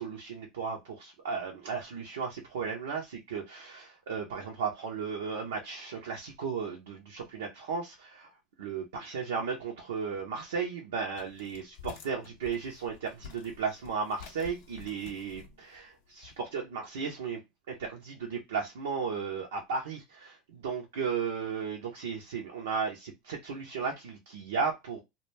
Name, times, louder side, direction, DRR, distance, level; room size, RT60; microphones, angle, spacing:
voice 1, 0.0-8.3 8.6-17.4 17.7-25.0, right 5 dB, 80° right, 0.5 m, -35 dB
sound 1, 11.1-16.4, left 8 dB, 70° left, 0.5 m, -50 dB
2.2 x 2.1 x 3.0 m
hypercardioid pair, 80°, 0 cm